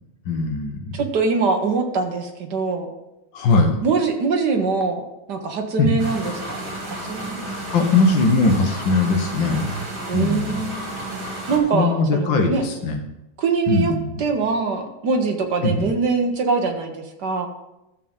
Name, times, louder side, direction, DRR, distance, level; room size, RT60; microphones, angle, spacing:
voice 1, 0.3-1.0 3.3-3.7 5.8-6.0 7.5-9.8 10.1-10.6 11.7-13.0 13.7-14.1 15.6-15.9, left 3 dB, 70° left, 3 dB, 1.9 m, -20 dB
voice 2, 0.9-2.9 3.8-6.7 7.0-7.4 10.1-10.8 11.1-12.6 13.4-13.9 14.2-17.5, right 4 dB, 60° right, 4 dB, 1.5 m, -23 dB
sound 1, 6.0-11.6, right 1 dB, 80° right, 3.2 m, -32 dB
13.0 x 7.4 x 3.7 m, 0.92 s
omnidirectional pair, 2.2 m